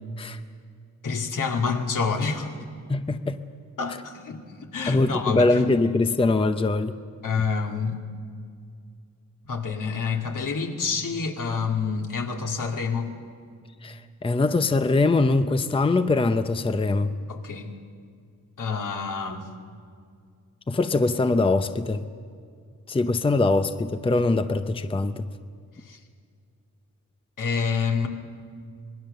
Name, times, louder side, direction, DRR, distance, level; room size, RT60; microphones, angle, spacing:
voice 1, 1.0-2.5 3.8-5.6 7.2-8.0 9.5-13.1 17.3-17.7 18.6-19.4 25.9-26.0 27.4-28.1, left 5 dB, 70° left, 2 dB, 2.4 m, -27 dB
voice 2, 2.9-3.4 4.9-7.0 13.8-17.1 20.7-22.1 22.9-25.2, left 3 dB, 15° left, 9 dB, 0.6 m, -22 dB
26.5 x 20.5 x 6.7 m, 2.2 s
wide cardioid pair, 135°, 33 cm